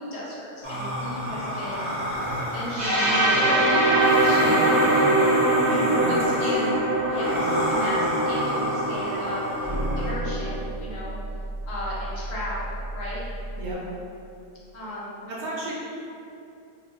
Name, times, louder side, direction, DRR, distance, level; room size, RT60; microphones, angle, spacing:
voice 1, 0.0-3.7 4.2-5.1 6.0-6.7 7.1-9.5 10.0-11.2 11.7-13.2 14.7-15.3, equal, 70° left, -6 dB, 0.9 m, -35 dB
sound 1, 0.6-10.1, equal, 20° right, 0.4 m, -31 dB
sound 2, 2.8-10.6, right 1 dB, 85° right, 1.3 m, -23 dB
voice 2, 5.7-6.4 13.6-13.8 15.3-15.7, right 1 dB, 70° right, -5 dB, 1.0 m, -32 dB
sound 3, 9.6-13.7, right 1 dB, 35° left, 0.6 m, -33 dB
2.6 x 2.1 x 3.8 m, 2.6 s
omnidirectional pair, 1.6 m